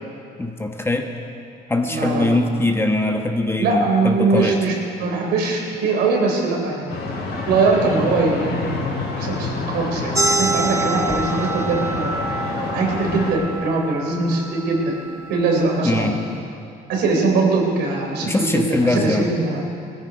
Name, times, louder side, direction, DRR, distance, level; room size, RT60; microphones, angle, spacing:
voice 1, 0.4-1.1 1.7-4.6 15.8-16.1 18.2-19.3, left 2 dB, 15° left, 4 dB, 1.2 m, -21 dB
voice 2, 1.9-2.4 3.6-7.0 7.5-12.3 12.7-14.9 15.3-16.1 16.9-19.6, right 3 dB, 80° right, 0 dB, 3.6 m, -21 dB
sound 1, 6.9-13.3, left 3 dB, 75° left, 4.0 m, -27 dB
sound 2, 10.1-15.3, right 3 dB, 20° right, 0.9 m, -26 dB
20.0 x 13.5 x 5.2 m, 2.6 s
cardioid pair, 110°, 17 cm